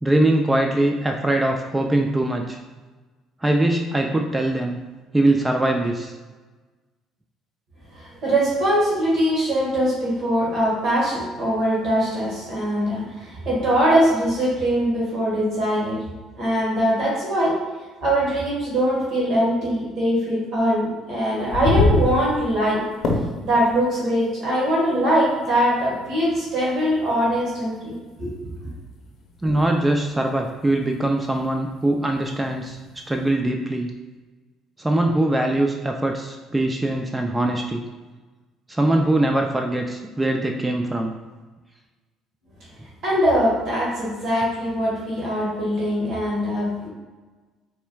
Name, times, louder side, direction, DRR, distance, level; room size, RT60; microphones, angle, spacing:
voice 1, 0.0-2.6 3.4-4.8 5.1-6.1 29.4-32.8 33.1-33.9 34.8-37.8 38.7-41.1, right 1 dB, 15° right, 3 dB, 0.4 m, -22 dB
voice 2, 7.9-16.0 16.4-17.6 18.0-22.8 23.4-28.5 43.0-46.9, equal, 65° right, -6 dB, 1.5 m, -22 dB
sound 1, 21.3-33.3, left 3 dB, 60° left, 0.7 m, -30 dB
4.2 x 3.4 x 2.3 m, 1.3 s
supercardioid pair, 70°, 0 cm